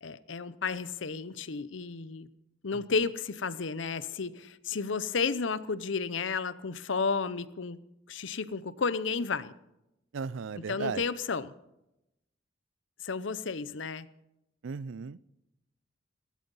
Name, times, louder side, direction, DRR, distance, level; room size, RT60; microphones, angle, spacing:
voice 1, 0.0-2.3 2.6-7.8 8.1-9.5 10.6-11.5 13.0-14.1, left 5 dB, 70° left, 16 dB, 0.7 m, -32 dB
voice 2, 10.1-11.0 14.6-15.2, right 5 dB, 70° right, 21 dB, 0.4 m, -35 dB
17.0 x 13.5 x 5.4 m, 0.88 s
head